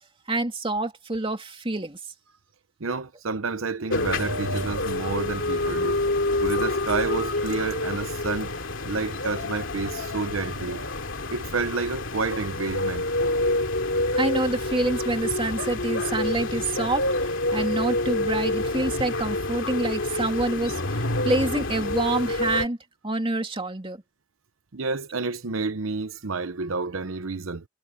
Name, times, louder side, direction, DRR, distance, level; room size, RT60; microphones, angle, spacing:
voice 1, 0.3-2.0 14.1-22.8 23.0-24.0, right 2 dB, 25° right, 2.6 m, -27 dB
voice 2, 2.8-6.0 6.4-8.5 8.8-10.8 11.3-13.0 24.7-27.6, right 4 dB, 80° right, 0.9 m, -29 dB
sound 1, 3.9-22.7, left 2 dB, 70° left, 2.6 m, -27 dB
head